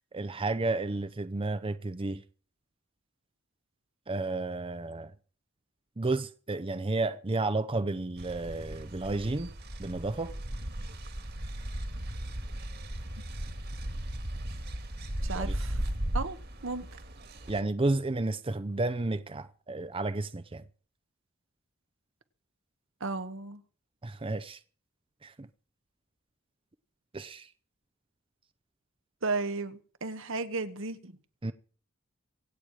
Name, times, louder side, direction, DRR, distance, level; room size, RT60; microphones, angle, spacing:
voice 1, 0.1-2.2 4.1-5.1 6.0-9.5 9.8-10.3 15.3-15.5 17.5-20.6 24.0-24.6 25.2-25.5 27.1-27.5 31.4-31.5, right 2 dB, 25° right, 0.6 m, -32 dB
sound 1, 8.2-17.6, right 1 dB, 55° right, 2.0 m, -36 dB
voice 2, 15.2-15.8 16.1-16.4 16.6-16.9 23.0-23.6 29.2-31.1, right 3 dB, 70° right, 1.3 m, -34 dB
25.0 x 9.1 x 4.8 m
head